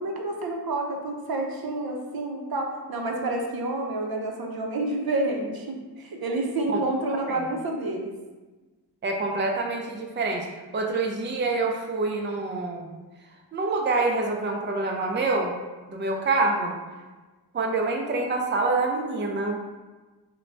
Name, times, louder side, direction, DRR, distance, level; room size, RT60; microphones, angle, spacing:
voice 1, 0.0-8.1, right 2 dB, 60° right, 1 dB, 0.7 m, -29 dB
voice 2, 9.0-10.5 10.7-12.9 13.5-15.5 15.9-16.8 17.5-19.6, right 3 dB, 30° right, 1 dB, 0.5 m, -26 dB
3.8 x 2.2 x 4.3 m, 1.3 s
cardioid pair, 60°, 40 cm